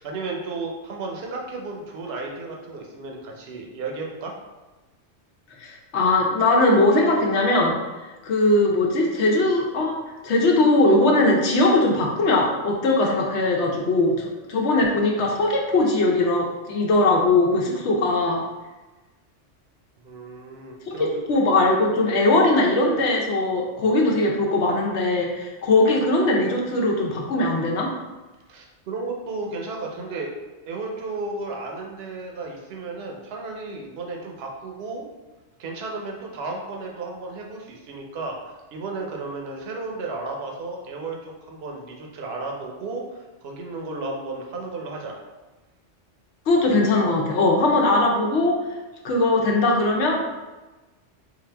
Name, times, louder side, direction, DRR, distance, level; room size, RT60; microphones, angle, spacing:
voice 1, 0.0-4.3 20.0-21.2 28.5-30.3 30.7-35.1 35.6-45.2, right 3 dB, 60° right, 0 dB, 0.9 m, -33 dB
voice 2, 5.6-7.8 8.2-18.4 20.9-21.0 21.3-27.9 46.5-48.6 49.0-50.4, left 2 dB, 65° left, -1 dB, 0.9 m, -20 dB
3.9 x 2.5 x 3.3 m, 1.2 s
omnidirectional pair, 1.3 m